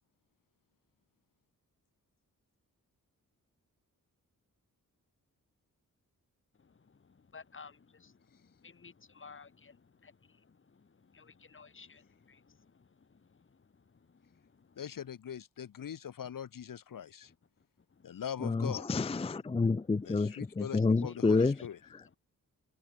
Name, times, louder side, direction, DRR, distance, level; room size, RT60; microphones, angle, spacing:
voice 1, 7.3-7.7 8.8-9.7 10.0-10.1 11.2-11.3 11.5-12.0 21.1-21.7, left 5 dB, 35° left, 1.8 m, -51 dB
voice 2, 14.8-17.3 18.0-18.9 20.0-21.8, left 8 dB, 75° left, 1.3 m, -41 dB
voice 3, 18.4-21.6 21.9-22.1, left 3 dB, 20° left, 0.5 m, -29 dB
open air
wide cardioid pair, 155°, 33 cm